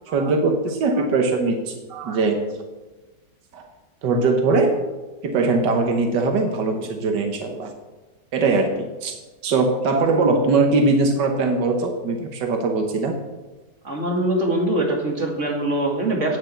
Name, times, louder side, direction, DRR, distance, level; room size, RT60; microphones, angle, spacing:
voice 1, 0.1-2.4 3.5-3.6 4.0-4.7 5.2-7.7 8.3-9.2 9.4-13.2, right 3 dB, 90° right, 4 dB, 1.8 m, -21 dB
voice 2, 13.8-16.4, right 1 dB, 45° right, 1 dB, 2.4 m, -23 dB
9.3 x 8.7 x 7.8 m, 1.2 s
omnidirectional pair, 1.8 m